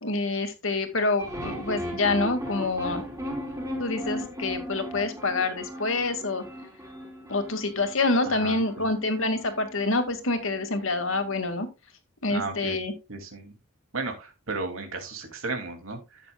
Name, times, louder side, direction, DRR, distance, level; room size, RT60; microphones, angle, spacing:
voice 1, 0.0-3.0 3.8-6.4 7.3-11.7 12.2-12.9, left 3 dB, 65° left, 7 dB, 2.1 m, -27 dB
sound 1, 1.2-11.5, equal, 15° right, 4.6 m, -37 dB
voice 2, 8.2-8.9 12.3-12.8 13.1-13.5 13.9-16.3, right 3 dB, 70° right, 3 dB, 2.7 m, -34 dB
12.5 x 8.6 x 2.3 m, 0.26 s
head